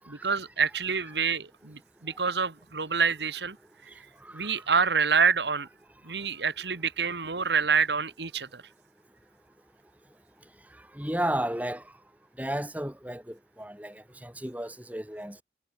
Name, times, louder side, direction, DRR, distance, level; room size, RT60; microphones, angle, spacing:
voice 1, 0.1-3.6 3.8-4.1 4.3-5.7 6.0-8.6, right 5 dB, 80° right, 1.8 m, -27 dB
voice 2, 4.2-4.5 10.9-11.8 12.4-15.4, right 1 dB, 10° right, 3.5 m, -33 dB
head